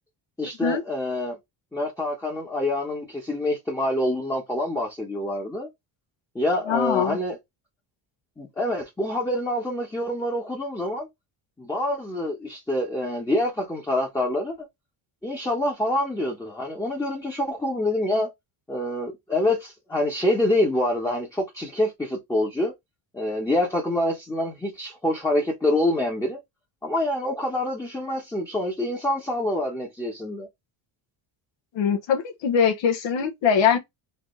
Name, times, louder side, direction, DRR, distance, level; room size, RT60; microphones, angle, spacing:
voice 1, 0.4-1.4 1.7-5.7 6.3-7.4 8.4-11.1 11.6-14.6 15.2-18.3 18.7-22.7 23.1-26.4 26.8-30.5, left 1 dB, 5° left, 1.0 m, -26 dB
voice 2, 6.7-7.2 31.7-33.8, left 7 dB, 65° left, 1.2 m, -22 dB
4.3 x 2.7 x 3.2 m
cardioid pair, 135°, 49 cm